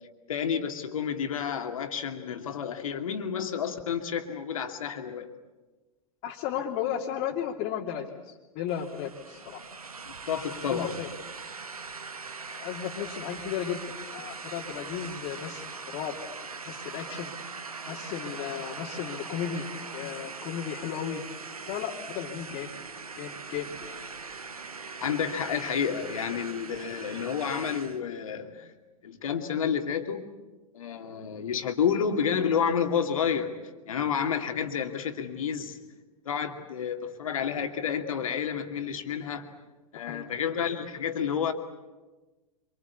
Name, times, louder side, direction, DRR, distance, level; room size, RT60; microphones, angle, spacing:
voice 1, 0.3-5.3 10.0-11.0 25.0-28.7 29.0-30.3 30.7-33.5 33.9-35.8 36.2-39.5 39.9-41.5, left 7 dB, 65° left, 6 dB, 2.6 m, -30 dB
voice 2, 6.2-9.6 10.5-11.1 12.4-13.8 14.1-15.6 15.9-16.2 16.7-17.3 17.9-19.7 19.9-21.2 21.7-22.7 23.2-23.9 40.1-40.3, left 9 dB, 40° left, -3 dB, 2.7 m, -34 dB
sound 1, 8.7-28.0, right 4 dB, 80° right, 1.6 m, -41 dB
26.0 x 24.5 x 8.4 m, 1.2 s
figure-of-eight pair, 95°, 19 cm